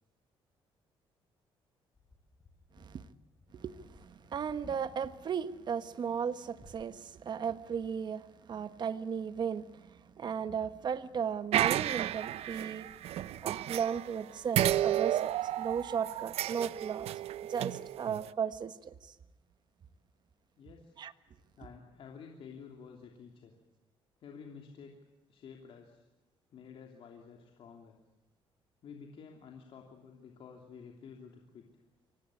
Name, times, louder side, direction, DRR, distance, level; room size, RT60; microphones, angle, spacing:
sound 1, 1.9-5.1 6.5-6.8, left 3 dB, 30° left, 5.9 m, -57 dB
voice 1, 2.7-3.1 3.5-12.9 13.4-15.3 15.6-17.1 17.5-19.1 21.0-21.1, right 7 dB, 45° right, 1.3 m, -36 dB
sound 2, 11.5-14.2 14.5-18.3, right 12 dB, 80° right, 0.7 m, -32 dB
voice 2, 20.6-21.0 21.6-23.5 24.2-25.0 25.3-26.1 26.5-28.0 28.8-31.7, left 6 dB, 60° left, 3.1 m, -51 dB
25.0 x 18.5 x 8.6 m
cardioid pair, 120°, 10 cm